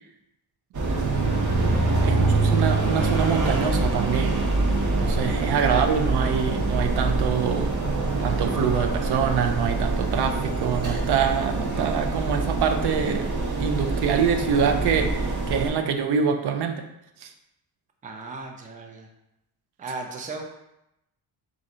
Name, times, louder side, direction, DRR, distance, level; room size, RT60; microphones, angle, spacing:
sound 1, 0.7-15.7, right 2 dB, 50° right, 0.8 m, -25 dB
voice 1, 0.8-1.3 2.0-4.4 5.0-7.7 8.2-13.3 13.6-16.8 17.2-17.3, right 7 dB, 90° right, 6 dB, 0.6 m, -25 dB
voice 2, 18.0-19.1 19.8-20.4, right 3 dB, 20° right, 2 dB, 0.4 m, -36 dB
4.2 x 2.5 x 3.7 m, 0.85 s
wide cardioid pair, 160°, 38 cm